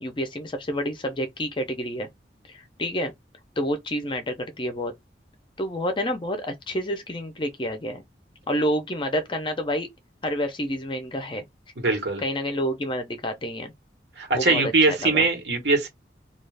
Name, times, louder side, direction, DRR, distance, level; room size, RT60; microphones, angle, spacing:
voice 1, 0.0-2.1 2.5-3.1 3.6-4.9 5.6-8.0 8.5-9.9 10.2-11.4 12.2-13.7 14.3-15.3, equal, 30° left, 0.5 m, -28 dB
voice 2, 11.8-12.2 14.2-15.9, right 3 dB, 80° right, 1.2 m, -22 dB
2.4 x 2.3 x 3.3 m
head